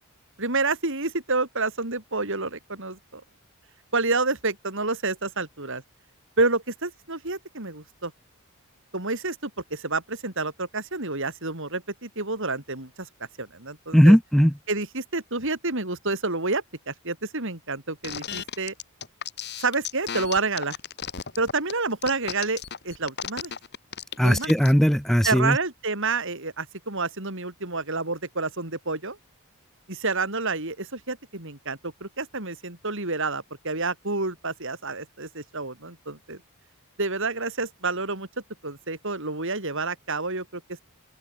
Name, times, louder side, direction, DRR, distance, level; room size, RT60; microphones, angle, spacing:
voice 1, 0.4-3.2 3.9-5.8 6.4-8.1 8.9-13.1 13.4-14.2 14.7-18.7 19.6-20.8 21.4-23.5 24.2-24.5 25.2-29.2 29.9-36.4 37.0-38.3 38.6-40.8, right 3 dB, 60° right, 4.7 m, -29 dB
voice 2, 13.9-14.5 24.2-25.6, equal, ahead, 1.3 m, -18 dB
sound 1, 18.0-24.7, left 7 dB, 50° left, 2.2 m, -34 dB
open air
head